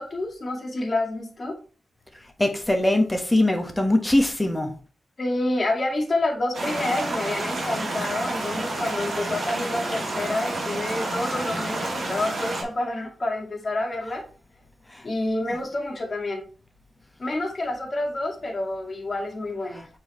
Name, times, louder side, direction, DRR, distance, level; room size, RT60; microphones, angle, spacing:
voice 1, 0.0-1.6 5.2-14.2 15.0-16.4 17.2-19.9, left 2 dB, 40° left, 1 dB, 2.1 m, -28 dB
voice 2, 2.4-4.7 15.5-15.6 19.7-19.8, left 1 dB, 10° left, 4 dB, 1.3 m, -22 dB
sound 1, 6.5-12.6, right 2 dB, 60° right, 2.4 m, -29 dB
7.4 x 4.6 x 3.1 m, 0.39 s
wide cardioid pair, 100°, 0 cm